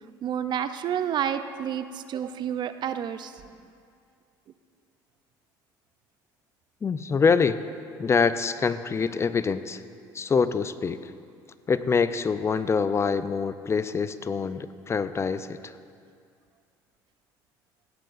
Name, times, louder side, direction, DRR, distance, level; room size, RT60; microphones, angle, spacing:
voice 1, 0.2-3.3, right 9 dB, 50° right, 11 dB, 0.5 m, -29 dB
voice 2, 6.8-7.6 8.0-9.8 10.1-11.1 11.7-15.8, left 5 dB, 30° left, 13 dB, 0.4 m, -25 dB
16.5 x 9.5 x 2.5 m, 2.3 s
supercardioid pair, 80°, 10 cm